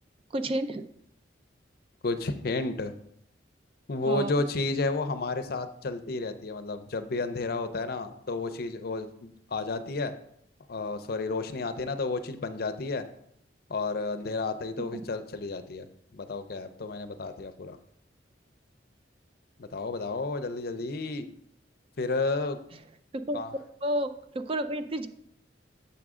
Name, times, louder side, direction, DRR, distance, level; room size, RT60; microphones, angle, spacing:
voice 1, 0.3-0.8 4.1-4.3 14.9-15.0 22.7-22.8 23.1-23.4 23.8-25.1, right 1 dB, 30° right, 9 dB, 0.4 m, -31 dB
voice 2, 2.0-2.9 3.9-10.1 10.7-13.0 13.7-15.9 16.1-17.8 19.6-21.3 22.0-22.6 23.3-23.5, left 3 dB, 55° left, 9 dB, 0.5 m, -31 dB
7.1 x 6.0 x 3.6 m, 0.71 s
head